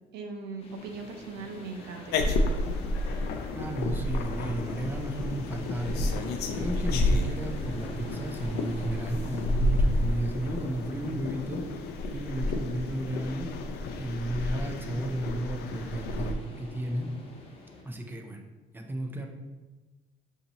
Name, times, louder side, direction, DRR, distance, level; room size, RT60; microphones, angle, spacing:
voice 1, 0.1-2.5, right 4 dB, 80° right, 4 dB, 0.7 m, -40 dB
sound 1, 0.6-15.3, left 3 dB, 60° left, 0.9 m, -56 dB
sound 2, 0.6-17.8, left 2 dB, 35° left, 0.9 m, -45 dB
sound 3, 2.1-16.3, left 1 dB, 80° left, 0.5 m, -30 dB
voice 2, 3.5-6.0 6.5-11.6 12.1-13.5 14.0-17.1 17.8-18.4 18.7-19.3, right 1 dB, 10° right, 3 dB, 0.6 m, -33 dB
6.4 x 2.8 x 3.0 m, 1.2 s
cardioid pair, 110°, 17 cm